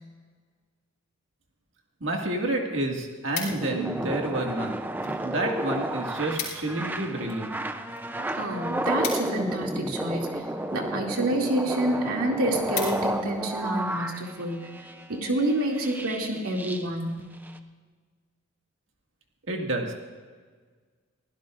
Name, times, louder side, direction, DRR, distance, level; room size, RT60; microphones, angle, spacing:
voice 1, 2.0-4.9 5.2-7.6 19.5-19.9, right 1 dB, 60° right, 1 dB, 2.1 m, -29 dB
sound 1, 3.3-3.9 4.6-5.2 5.5-5.6 5.8-5.9 6.2-6.8 7.1-10.0 10.7-11.0 11.5-11.6 12.0-12.1 12.4-13.4 13.8-14.1, left 6 dB, 40° left, 3.8 m, -37 dB
sound 2, 3.4-16.9 17.4-17.6, right 1 dB, 10° right, 0.5 m, -32 dB
voice 2, 8.3-10.4 10.7-14.7 15.1-17.2, right 1 dB, 85° right, 0 dB, 2.5 m, -28 dB
23.0 x 16.0 x 2.6 m, 1.5 s
head